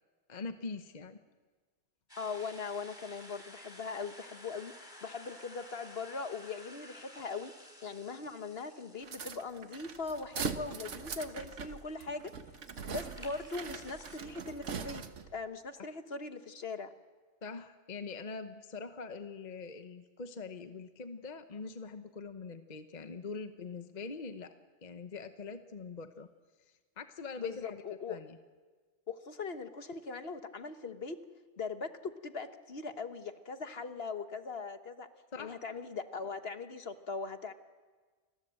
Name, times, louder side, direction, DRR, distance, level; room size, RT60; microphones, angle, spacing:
voice 1, 0.3-1.2 15.8-15.9 17.4-24.5 24.8-26.3 26.7-27.8 28.1-28.4 35.3-35.6, left 4 dB, 40° left, 8 dB, 1.1 m, -43 dB
sound 1, 2.1-14.2, left 1 dB, 20° left, 3.7 m, -54 dB
voice 2, 2.2-4.7 5.0-7.5 7.8-12.3 12.9-15.0 15.3-16.9 27.4-28.2 29.1-31.2 31.6-35.1 35.4-37.5, left 4 dB, 55° left, 8 dB, 1.5 m, -40 dB
sound 2, 9.0-15.4, right 6 dB, 75° right, 1.5 m, -41 dB
29.0 x 21.0 x 7.7 m, 1.4 s
omnidirectional pair, 1.2 m